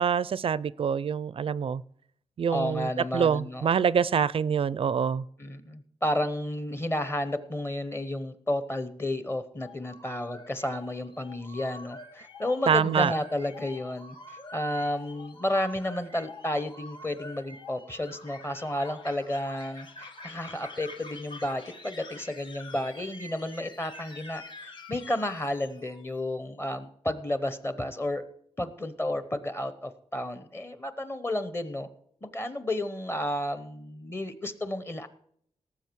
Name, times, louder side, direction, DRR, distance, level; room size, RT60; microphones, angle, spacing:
voice 1, 0.0-1.8 2.4-5.3 12.7-13.1, right 7 dB, 55° right, 19 dB, 0.4 m, -25 dB
voice 2, 2.5-3.7 5.4-28.2 28.6-31.9 32.2-35.1, left 1 dB, 20° left, 11 dB, 0.9 m, -32 dB
sound 1, 9.6-26.1, left 2 dB, 45° left, 1.5 m, -46 dB
18.5 x 7.5 x 4.6 m, 0.66 s
wide cardioid pair, 140°, 12 cm